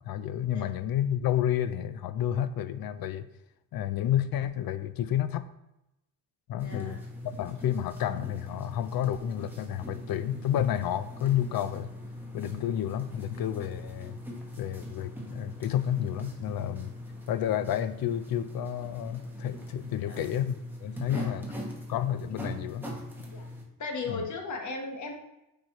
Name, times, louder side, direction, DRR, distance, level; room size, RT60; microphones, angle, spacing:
voice 1, 0.0-3.3 3.7-5.5 6.5-7.0 7.2-11.9 12.3-14.2 14.6-16.9 17.3-21.5 21.9-22.9 24.1-24.3, left 11 dB, 90° left, 13 dB, 0.5 m, -30 dB
voice 2, 6.5-6.9 20.0-20.2 21.1-21.3 23.3-23.5 23.8-25.1, left 3 dB, 55° left, 3 dB, 1.2 m, -36 dB
sound 1, 6.6-23.6, left 1 dB, 5° right, 1.2 m, -41 dB
9.3 x 4.7 x 3.0 m, 0.90 s
wide cardioid pair, 155°, 35 cm